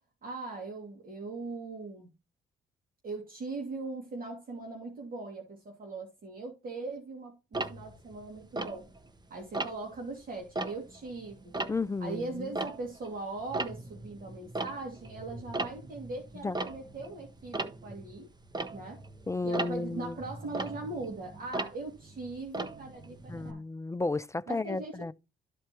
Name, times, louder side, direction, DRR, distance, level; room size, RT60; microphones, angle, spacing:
voice 1, 0.2-2.1 3.0-8.9 9.3-11.5 12.0-18.3 18.7-19.0 19.4-23.6 24.5-25.0, right 3 dB, 45° right, 2.3 m, -40 dB
Tick-tock, 7.5-9.2 9.5-10.0 10.4-13.1 13.4-23.5, right 2 dB, 20° right, 1.0 m, -38 dB
voice 2, 11.7-12.5 16.4-16.6 19.3-20.2 23.3-25.1, left 3 dB, 15° left, 0.3 m, -33 dB
13.0 x 4.5 x 2.9 m
cardioid pair, 90°, 20 cm